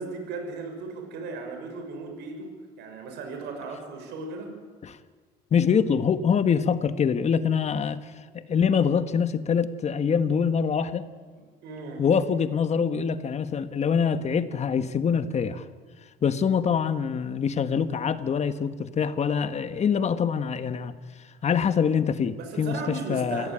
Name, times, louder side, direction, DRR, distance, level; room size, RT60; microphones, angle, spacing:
voice 1, 0.0-2.5 2.8-4.5 11.6-12.0 22.4-23.5, right 4 dB, 80° right, 4 dB, 5.6 m, -36 dB
voice 2, 5.5-8.0 8.3-11.1 12.0-15.6 16.2-20.9 21.4-23.5, left 6 dB, 40° left, 11 dB, 1.5 m, -24 dB
27.0 x 17.5 x 9.0 m, 1.5 s
cardioid pair, 110°, 17 cm